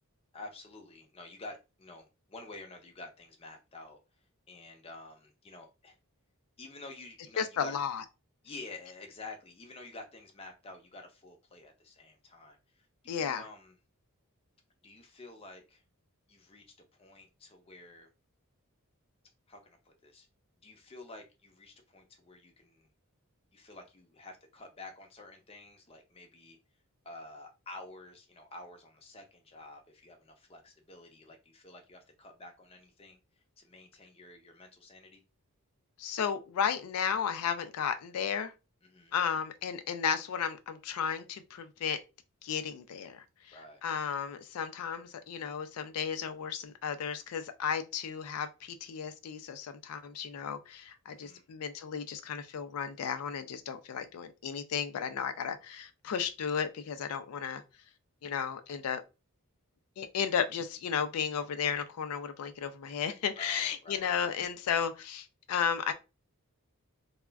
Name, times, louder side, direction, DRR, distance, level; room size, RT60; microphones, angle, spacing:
voice 1, 0.3-4.0 4.5-6.0 6.6-7.8 8.4-13.8 14.8-15.8 16.3-16.6 17.0-18.1 19.5-20.3 20.6-22.9 23.5-26.6 27.0-33.2 33.6-35.2 38.8-39.2 43.5-43.8 51.1-51.5 63.4-64.1, left 2 dB, 25° left, 0.6 m, -49 dB
voice 2, 7.4-8.0 13.1-13.5 36.0-38.5 39.1-42.0 42.4-43.6 43.8-57.6 58.2-59.0 60.0-65.9, left 7 dB, 80° left, 0.4 m, -34 dB
2.3 x 2.1 x 3.3 m
head